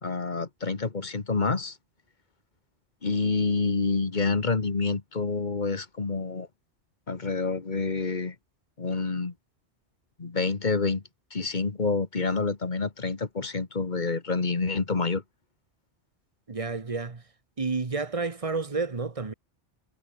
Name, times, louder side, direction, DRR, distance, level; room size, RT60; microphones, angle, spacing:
voice 1, 0.0-1.8 3.0-6.5 7.1-8.3 8.8-9.3 10.2-11.0 11.3-15.2, left 4 dB, 40° left, 1.7 m, -28 dB
voice 2, 16.5-17.2 17.6-19.3, right 4 dB, 30° right, 1.3 m, -30 dB
omnidirectional pair, 1.2 m